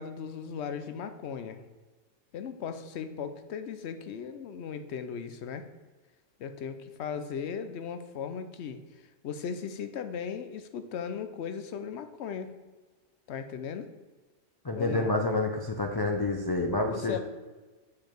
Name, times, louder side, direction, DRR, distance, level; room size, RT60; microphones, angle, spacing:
voice 1, 0.0-1.6 2.3-5.7 6.4-8.8 9.2-12.5 13.3-13.9 14.7-15.1 16.8-17.2, left 7 dB, 65° left, 10 dB, 0.9 m, -37 dB
voice 2, 14.6-17.2, left 2 dB, 40° left, 1 dB, 0.3 m, -28 dB
7.1 x 4.9 x 4.5 m, 1.3 s
omnidirectional pair, 1.3 m